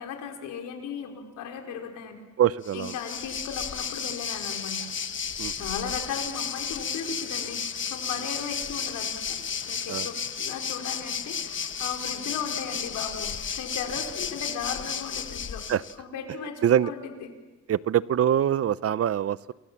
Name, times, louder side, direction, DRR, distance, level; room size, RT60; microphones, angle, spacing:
voice 1, 0.0-2.2 2.7-4.9 5.5-9.4 9.7-15.6 16.0-17.3, left 6 dB, 90° left, 3 dB, 4.5 m, -36 dB
voice 2, 2.4-2.9 5.4-5.5 9.9-10.1 15.7-15.8 16.6-16.9 17.7-19.5, right 10 dB, 50° right, 18 dB, 0.8 m, -24 dB
Waves surf, 2.6-15.9, left 7 dB, 40° left, 1.2 m, -33 dB
29.5 x 23.5 x 7.4 m, 1.2 s
cardioid pair, 90°, 30 cm